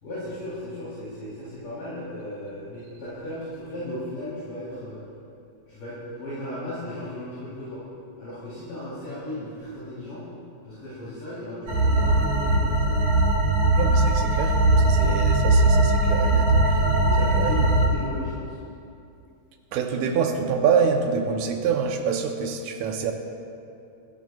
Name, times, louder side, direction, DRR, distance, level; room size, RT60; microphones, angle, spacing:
voice 1, 0.0-5.0 5.7-7.8 8.2-10.2 10.6-13.0 14.9-15.2 16.8-18.6, left 1 dB, 55° left, -11 dB, 4.8 m, -36 dB
sound 1, 11.7-17.9, right 2 dB, 55° right, 2.6 m, -20 dB
voice 2, 13.8-16.8 17.2-17.5 19.7-23.1, right 6 dB, 85° right, 3 dB, 1.7 m, -26 dB
26.0 x 14.0 x 2.4 m, 2.6 s
omnidirectional pair, 4.5 m